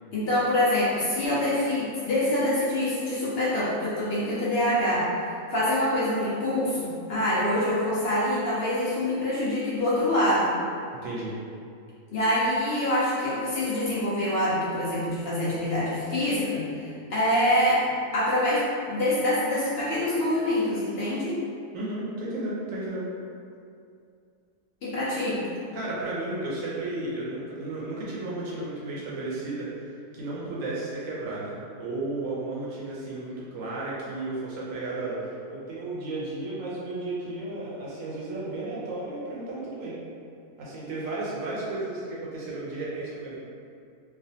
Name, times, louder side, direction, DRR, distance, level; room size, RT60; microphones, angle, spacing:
voice 1, 0.1-5.0 5.5-10.5 12.1-16.7 17.1-17.8 18.1-21.4 24.8-25.4, left 1 dB, 60° left, -9 dB, 0.6 m, -25 dB
voice 2, 11.0-11.3 21.7-23.1 25.0-25.1 25.7-29.7 30.1-35.2 35.5-40.0 40.6-43.4, right 2 dB, 65° right, -6 dB, 0.9 m, -33 dB
3.2 x 2.1 x 2.6 m, 2.4 s
omnidirectional pair, 1.6 m